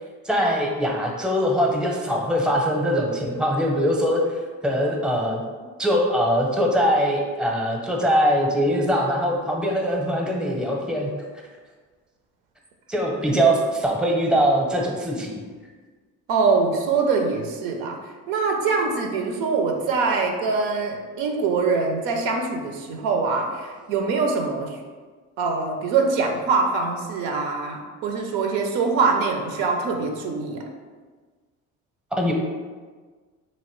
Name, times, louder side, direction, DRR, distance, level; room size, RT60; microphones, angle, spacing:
voice 1, 0.2-4.2 4.6-5.4 5.8-11.1 12.9-15.4 32.1-32.3, equal, ahead, 0 dB, 0.6 m, -22 dB
voice 2, 16.3-18.0 18.3-24.8 25.4-30.6, right 4 dB, 80° right, 3 dB, 0.5 m, -23 dB
2.9 x 2.7 x 3.0 m, 1.4 s
supercardioid pair, 65°, 35 cm